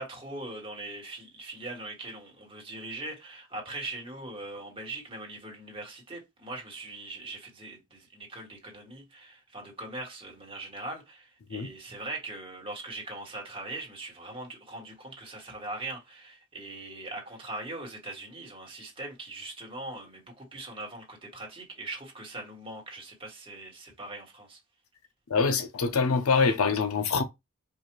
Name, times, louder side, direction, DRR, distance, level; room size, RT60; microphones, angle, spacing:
voice 1, 0.0-24.6, right 2 dB, 25° right, 1.4 m, -41 dB
voice 2, 25.3-27.2, left 4 dB, 80° left, 0.6 m, -25 dB
4.7 x 2.4 x 3.0 m
head